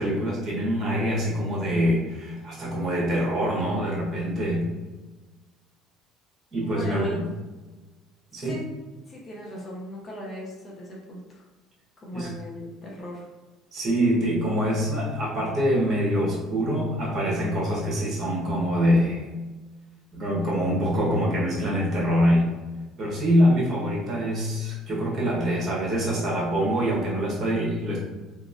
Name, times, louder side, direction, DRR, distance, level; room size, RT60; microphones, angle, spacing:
voice 1, 0.0-4.6 6.5-7.2 8.3-8.5 12.1-12.3 13.7-19.2 20.1-22.5 23.0-28.0, equal, 40° right, -5 dB, 1.1 m, -24 dB
voice 2, 6.6-7.2 8.3-8.6 9.1-11.4 12.0-13.2, left 1 dB, 25° left, -3 dB, 0.6 m, -38 dB
3.0 x 2.4 x 2.5 m, 1.2 s
cardioid pair, 135°, 0 cm